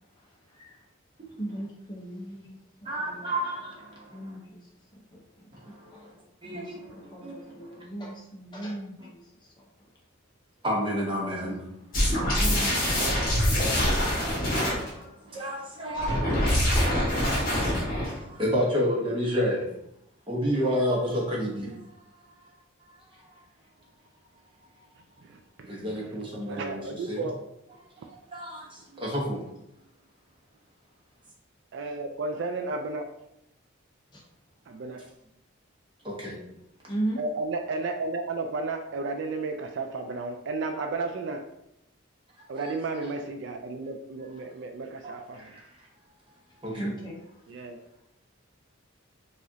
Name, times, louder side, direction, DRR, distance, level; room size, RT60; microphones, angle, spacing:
voice 1, 1.4-3.2 4.1-4.6 4.9-5.5 5.9-6.1 6.5-9.2 12.1-12.7 15.9-16.1 16.7-17.9 31.8-32.0 34.1-34.2 36.9-37.2 46.7-47.2, right 1 dB, 20° left, -2 dB, 0.7 m, -37 dB
voice 2, 2.9-3.7 6.4-6.7 7.2-7.3 10.6-11.6 14.5-15.0 15.3-16.2 17.7-17.8 18.1-19.6 20.3-21.7 25.7-26.8 27.1-27.2 28.3-28.6 29.0-29.4 36.2-36.3 42.6-42.7 45.0-45.1 46.6-46.9, equal, 25° right, -4 dB, 0.9 m, -29 dB
sound 1, 11.9-14.9 16.0-18.2, equal, 45° left, 1.4 m, -24 dB
voice 3, 12.9-13.4 21.6-21.8 25.6-25.7 26.5-27.3 31.7-33.1 34.7-35.0 37.2-41.4 42.5-45.5 47.5-47.8, right 3 dB, 60° right, 5 dB, 0.3 m, -33 dB
4.8 x 2.5 x 2.7 m, 0.81 s
head